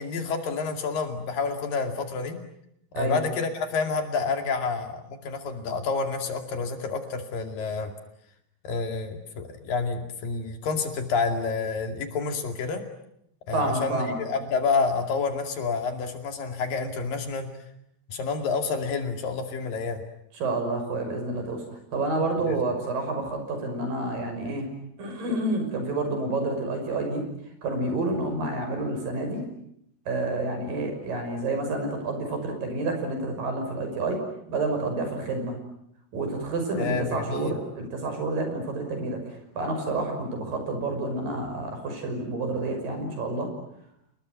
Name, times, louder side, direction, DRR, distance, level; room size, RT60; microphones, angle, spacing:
voice 1, 0.0-2.4 3.0-7.9 8.6-12.8 13.5-17.5 18.1-20.0 22.5-22.6 36.8-37.6, left 4 dB, 65° left, 6 dB, 4.1 m, -29 dB
voice 2, 13.5-14.2 20.4-21.6 21.9-24.7 25.0-27.2 27.6-29.4 30.1-34.2 34.5-35.6 36.1-39.2 39.6-43.5, right 2 dB, 60° right, 5 dB, 7.5 m, -29 dB
29.5 x 20.5 x 9.5 m, 0.76 s
omnidirectional pair, 4.5 m